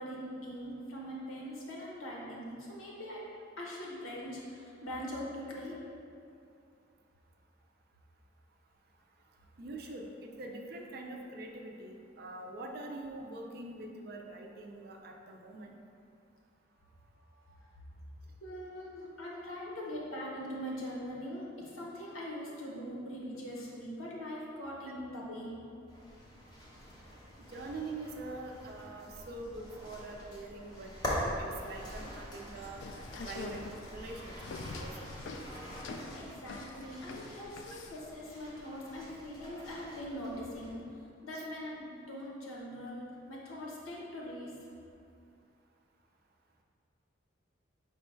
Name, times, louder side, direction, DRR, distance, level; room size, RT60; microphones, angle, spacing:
voice 1, 0.0-3.3 3.6-5.8 17.4-17.6 18.4-25.5 36.1-40.8 41.2-44.5, equal, 90° left, -4 dB, 0.9 m, -42 dB
voice 2, 9.6-15.7 27.4-32.8 33.2-34.4 34.7-35.1 41.3-41.4, right 2 dB, 50° right, 2 dB, 0.4 m, -44 dB
sound 1, 25.9-40.7, equal, 20° left, 0.7 m, -44 dB
sound 2, 32.6-38.0, left 3 dB, 65° left, 0.3 m, -44 dB
5.0 x 2.2 x 4.4 m, 2.5 s
head